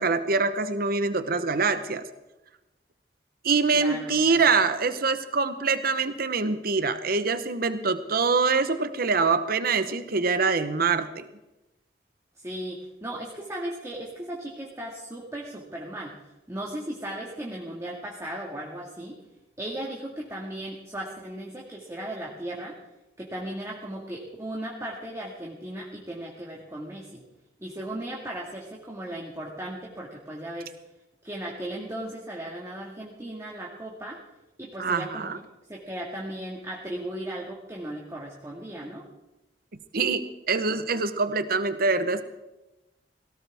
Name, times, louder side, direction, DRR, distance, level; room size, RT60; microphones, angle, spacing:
voice 1, 0.0-2.1 3.4-11.3 34.8-35.4 39.9-42.2, right 4 dB, 55° right, 11 dB, 1.0 m, -24 dB
voice 2, 3.7-4.4 12.4-16.1 16.5-19.2 19.6-22.8 23.2-27.2 27.6-30.7 31.2-34.2 34.6-35.3 35.7-39.1, right 1 dB, 15° right, -3 dB, 1.9 m, -36 dB
17.5 x 17.5 x 3.6 m, 0.98 s
head